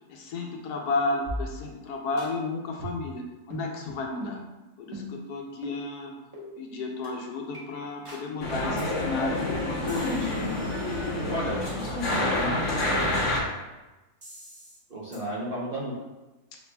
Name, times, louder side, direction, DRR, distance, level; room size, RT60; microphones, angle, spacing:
voice 1, 0.1-4.4 4.8-6.1 6.6-10.4, left 3 dB, 80° left, 0 dB, 1.2 m, -32 dB
sound 1, 1.3-1.9 2.2-2.3 2.8-3.2 3.5-3.7 4.2-4.4 4.9-5.2 5.6-5.8 6.3-6.5 7.0-7.1 7.5-7.6 8.1-8.3 8.8-8.9 9.2-9.5 9.9-11.7 14.2-14.8 15.1-15.2, equal, 20° right, 1.0 m, -40 dB
sound 2, 8.4-13.4, left 1 dB, 55° left, 1.2 m, -28 dB
voice 2, 11.3-13.3 14.9-15.9, equal, 50° right, -6 dB, 0.7 m, -33 dB
5.8 x 3.1 x 2.2 m, 1.1 s
omnidirectional pair, 1.6 m